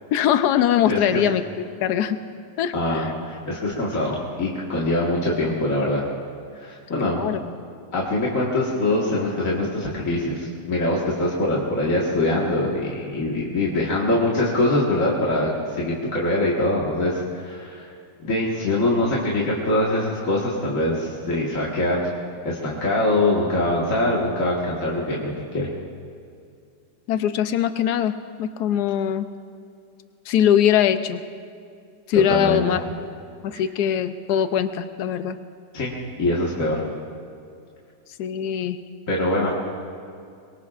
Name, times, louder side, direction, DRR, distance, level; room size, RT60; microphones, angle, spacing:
voice 1, 0.1-1.4 1.8-2.2 2.6-3.1 7.0-7.4 27.1-28.1 28.4-29.3 30.3-31.2 32.1-32.8 33.4-35.4 38.2-38.8, left 9 dB, 65° left, 10 dB, 1.1 m, -21 dB
voice 2, 0.9-1.2 2.7-6.0 6.6-7.2 7.9-17.9 18.2-22.1 22.5-25.7 32.1-32.6 33.5-33.6 35.7-35.9 36.2-36.8 39.1-39.5, left 1 dB, 40° left, -5 dB, 2.0 m, -23 dB
23.0 x 23.0 x 2.5 m, 2.4 s
omnidirectional pair, 2.2 m